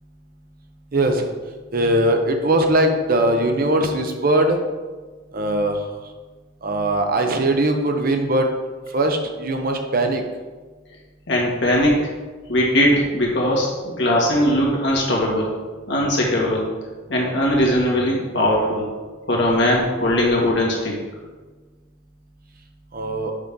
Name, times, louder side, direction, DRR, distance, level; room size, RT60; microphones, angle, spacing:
voice 1, 0.9-1.3 1.7-4.6 5.3-5.8 6.6-8.5 8.9-10.2 22.9-23.3, right 1 dB, 45° right, 4 dB, 0.7 m, -20 dB
voice 2, 11.3-12.0 12.5-15.5 15.9-16.7 17.1-18.9 19.3-20.9, left 1 dB, 65° left, -2 dB, 1.7 m, -19 dB
6.5 x 5.6 x 3.7 m, 1.4 s
head